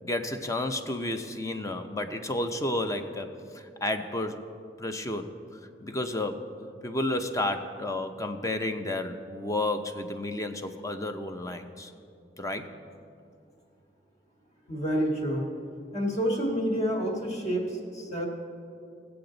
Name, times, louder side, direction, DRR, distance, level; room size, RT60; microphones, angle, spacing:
voice 1, 0.0-4.4 4.8-6.5 6.8-11.9 12.4-12.7, left 1 dB, 20° left, 7 dB, 0.6 m, -32 dB
voice 2, 14.7-15.5 15.9-18.3, equal, 40° left, 0 dB, 1.8 m, -28 dB
19.0 x 7.8 x 3.9 m, 2.5 s
head